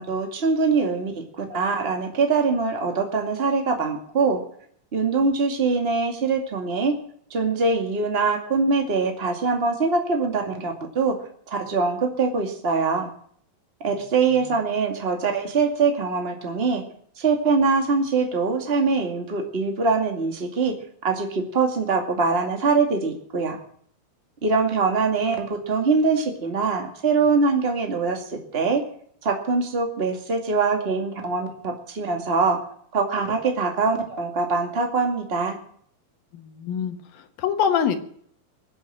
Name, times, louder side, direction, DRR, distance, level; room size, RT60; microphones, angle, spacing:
voice 1, 0.0-4.4 4.9-6.9 7.3-11.2 11.5-13.1 13.8-16.8 17.2-20.8 21.0-23.6 24.4-28.8 29.2-32.6 32.9-35.6, right 4 dB, 20° right, 3 dB, 1.8 m, -23 dB
voice 2, 36.3-38.0, left 8 dB, 75° left, 6 dB, 3.1 m, -25 dB
21.0 x 8.4 x 7.6 m, 0.63 s
omnidirectional pair, 4.2 m